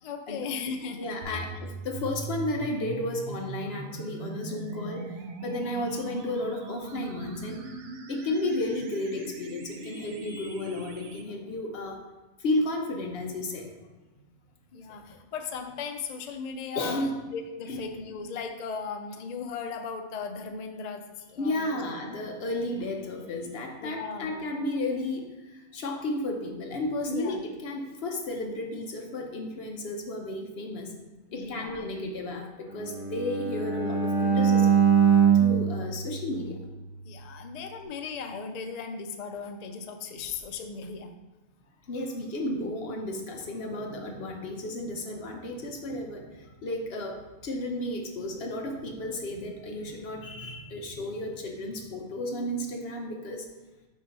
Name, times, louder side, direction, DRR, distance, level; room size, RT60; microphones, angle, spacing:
voice 1, 0.0-1.4 1.9-2.1 14.7-21.8 23.8-24.4 27.1-27.4 31.3-31.8 37.0-41.2, left 5 dB, 85° left, 5 dB, 0.3 m, -37 dB
voice 2, 1.0-5.1 5.4-7.6 8.1-12.0 12.4-13.7 16.7-17.2 17.7-17.8 21.4-30.9 31.3-34.8 35.3-36.6 41.9-53.4, left 1 dB, 55° left, 2 dB, 1.0 m, -33 dB
sound 1, 1.2-11.2, right 3 dB, 70° right, 0.9 m, -40 dB
Bowed string instrument, 32.7-36.9, right 7 dB, 35° left, 2.3 m, -23 dB
6.4 x 2.8 x 5.3 m, 1.1 s
omnidirectional pair, 1.4 m